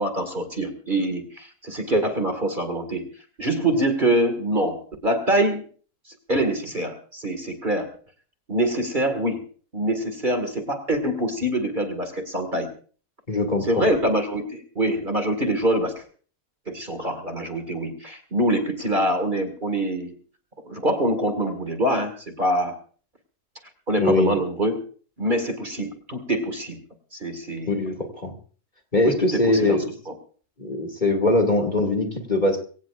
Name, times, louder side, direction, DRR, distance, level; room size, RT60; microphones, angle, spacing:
voice 1, 0.0-3.1 3.4-5.6 6.1-7.9 8.5-9.4 9.7-12.7 13.6-16.0 16.7-20.1 20.7-22.8 23.9-24.8 25.2-26.8 27.1-27.8 29.0-29.8 30.1-30.2, right 1 dB, 30° right, 7 dB, 2.1 m, -25 dB
voice 2, 13.3-13.8 24.0-24.4 27.7-28.3 28.9-29.8 30.6-32.6, left 2 dB, 30° left, 5 dB, 2.4 m, -22 dB
23.5 x 17.5 x 2.5 m, 0.42 s
omnidirectional pair, 1.6 m